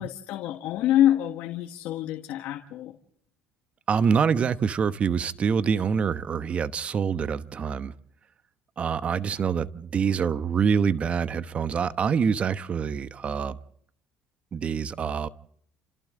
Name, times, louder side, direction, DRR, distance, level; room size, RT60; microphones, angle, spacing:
voice 1, 0.0-3.0, left 12 dB, 70° left, 1.5 m, -26 dB
voice 2, 3.9-7.9 8.8-13.6 14.5-15.3, right 6 dB, 40° right, 1.0 m, -25 dB
28.5 x 27.0 x 3.8 m
supercardioid pair, 95°, 3 cm